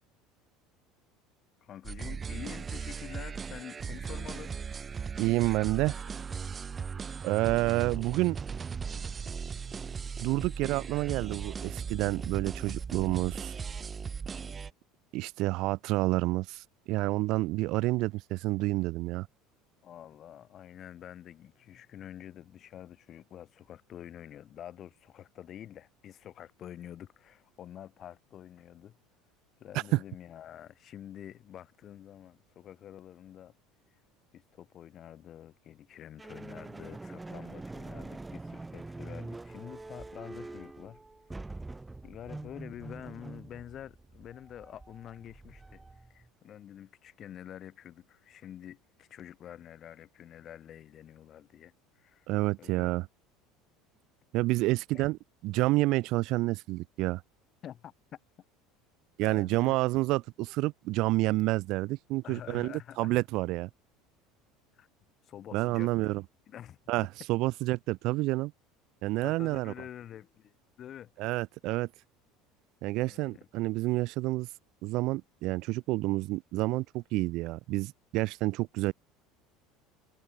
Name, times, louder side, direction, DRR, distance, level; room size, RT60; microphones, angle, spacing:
voice 1, 1.6-4.6 19.8-29.0 29.6-33.5 34.3-41.0 42.0-52.3 52.6-52.9 54.9-55.0 57.6-58.2 59.2-59.8 62.2-63.2 64.7-64.9 65.2-66.1 66.5-66.8 69.2-71.3 73.0-73.5, left 10 dB, 45° left, 1.9 m, -47 dB
sound 1, 1.8-14.7, right 6 dB, 30° right, 1.7 m, -38 dB
voice 2, 5.2-6.0 7.2-8.4 10.2-13.5 15.1-19.3 29.9-30.0 52.3-53.1 54.3-55.2 55.4-57.2 59.2-63.7 65.5-66.2 66.9-68.5 69.0-69.7 71.2-71.9 72.8-74.5 74.8-78.9, right 20 dB, 65° right, 0.3 m, -29 dB
sound 2, 36.2-46.3, right 2 dB, 10° right, 0.7 m, -45 dB
supercardioid pair, 100°, 0 cm